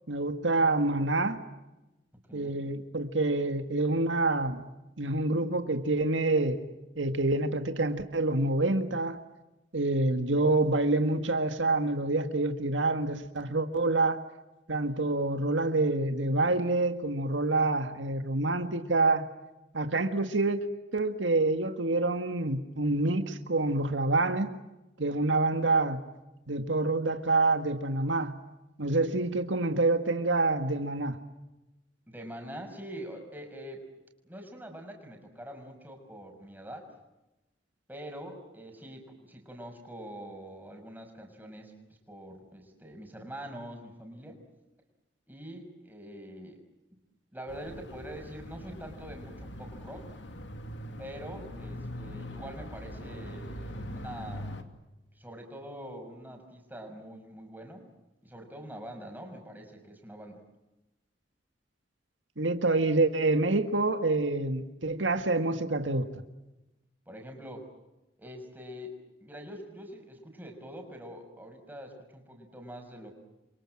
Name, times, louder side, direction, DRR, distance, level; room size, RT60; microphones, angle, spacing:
voice 1, 0.1-1.4 2.3-4.7 5.0-6.6 7.0-9.2 9.7-14.2 14.7-19.3 19.7-20.7 20.9-24.5 25.0-26.0 26.5-28.3 28.8-31.2 62.4-66.1, right 2 dB, 85° right, 1.9 m, -27 dB
voice 2, 2.3-2.6 32.1-33.8 34.2-36.9 37.9-41.7 42.1-44.4 45.3-46.6 47.3-50.2 51.0-54.7 55.1-57.9 58.2-60.4 67.1-67.7 68.2-73.1, equal, 10° right, 6.0 m, -44 dB
sound 1, 47.5-54.6, equal, 75° left, 2.6 m, -42 dB
29.0 x 25.0 x 7.6 m
head